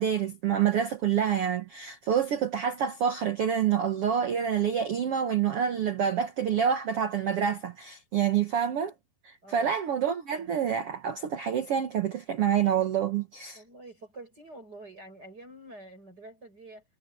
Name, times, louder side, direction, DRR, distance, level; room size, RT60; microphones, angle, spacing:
voice 1, 0.0-8.9 9.2-13.6, right 8 dB, 70° right, 1.4 m, -27 dB
voice 2, 9.4-9.7 13.5-16.8, right 2 dB, 25° right, 7.4 m, -47 dB
omnidirectional pair, 4.5 m